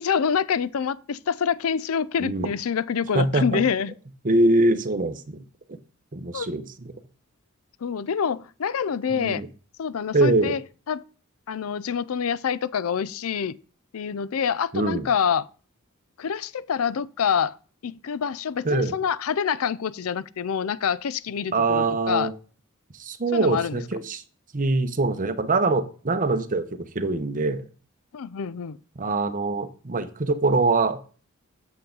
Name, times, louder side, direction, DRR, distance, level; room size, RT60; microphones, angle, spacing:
voice 1, 0.0-3.9 6.3-6.5 7.8-9.4 9.8-10.6 10.9-11.0 11.5-13.6 13.9-15.5 16.2-17.5 17.8-22.3 23.3-23.8 28.1-28.8, left 7 dB, 75° left, 0.5 m, -26 dB
voice 2, 3.1-3.6 4.2-5.4 6.1-6.9 9.1-9.5 10.1-10.6 14.7-15.1 18.6-18.9 21.5-22.3 23.0-24.2 24.5-27.6 29.0-31.0, right 2 dB, 40° right, 0.9 m, -23 dB
8.4 x 7.0 x 3.9 m
head